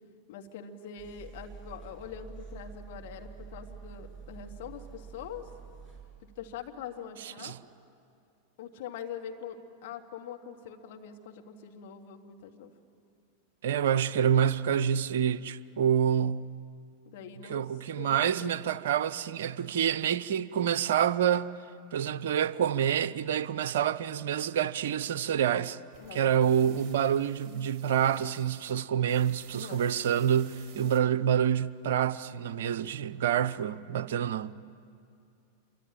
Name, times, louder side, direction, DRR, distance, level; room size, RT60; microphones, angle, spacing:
voice 1, 0.3-5.5 6.2-7.6 8.6-12.7 17.0-17.7 18.0-18.8 26.0-26.2 27.5-27.6 29.5-29.8, left 7 dB, 50° left, 2.2 m, -43 dB
sound 1, 1.0-6.0, right 5 dB, ahead, 7.9 m, -47 dB
voice 2, 7.2-7.6 13.6-16.5 17.5-21.5 21.9-25.8 26.1-34.6, right 9 dB, 60° right, 0.7 m, -27 dB
sound 2, 25.9-28.7 29.1-31.0, right 9 dB, 30° right, 2.7 m, -55 dB
27.0 x 24.5 x 8.8 m
figure-of-eight pair, 90°, 0 cm